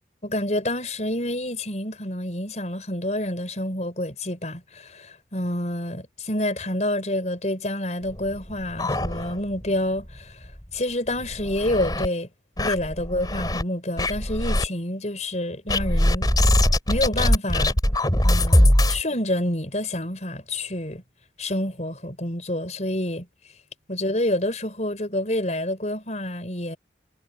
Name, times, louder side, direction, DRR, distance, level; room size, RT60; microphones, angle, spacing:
voice 1, 0.2-10.4 10.7-12.3 12.6-16.5 16.9-17.8 18.2-21.0 21.4-23.3 23.9-26.8, left 1 dB, 40° left, 5.8 m, -28 dB
sound 1, 8.1-9.6 10.0-10.1 10.4-10.5 11.1-12.1 12.6-13.6 14.0-14.7 15.7-19.0, left 1 dB, 20° left, 4.2 m, -21 dB
head